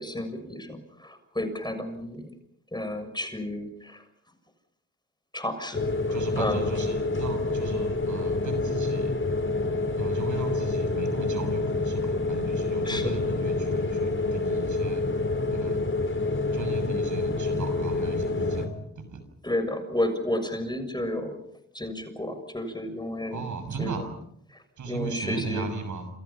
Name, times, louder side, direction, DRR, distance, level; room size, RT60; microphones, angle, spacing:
voice 1, 0.0-2.3 2.7-4.0 5.3-5.8 6.4-6.6 12.8-13.1 18.4-18.5 19.4-21.4 21.7-23.5 23.8-24.0 24.9-25.7, left 1 dB, 15° left, 8 dB, 6.8 m, -31 dB
sound 1, 5.7-18.7, left 3 dB, 40° left, 5.5 m, -27 dB
voice 2, 6.1-9.2 10.0-15.0 15.5-15.8 16.5-19.2 23.3-24.1 24.8-26.1, right 4 dB, 80° right, 9 dB, 6.8 m, -36 dB
28.5 x 28.0 x 5.8 m, 0.74 s
cardioid pair, 60°, 30 cm